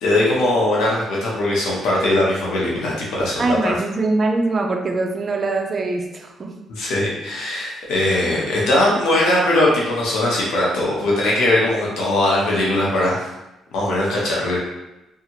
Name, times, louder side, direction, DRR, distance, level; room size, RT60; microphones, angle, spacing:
voice 1, 0.0-3.7 6.8-13.3 13.7-14.6, left 1 dB, 85° left, -4 dB, 1.0 m, -20 dB
voice 2, 3.4-6.5, right 2 dB, 40° right, 3 dB, 0.4 m, -22 dB
2.8 x 2.4 x 2.9 m, 0.95 s
cardioid pair, 90°, 0 cm